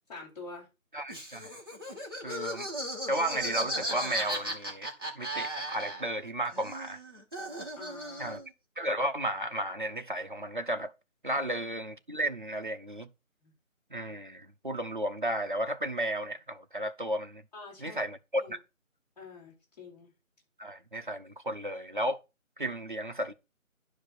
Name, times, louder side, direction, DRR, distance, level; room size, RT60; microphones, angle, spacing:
voice 1, 0.1-0.7 7.7-8.4 11.3-11.4 13.4-13.5 17.5-18.0 18.4-18.6 19.2-20.1, left 3 dB, 30° left, 5.2 m, -46 dB
voice 2, 0.9-1.5 2.2-2.7 3.1-7.0 8.2-8.4 8.8-10.9 11.2-13.1 13.9-17.4 17.8-18.6 20.6-22.2 22.6-23.3, right 1 dB, 35° right, 0.7 m, -33 dB
Laughter, 1.1-6.3 6.5-8.5, right 1 dB, 15° right, 1.2 m, -36 dB
11.0 x 5.1 x 5.9 m
figure-of-eight pair, 165°, 41 cm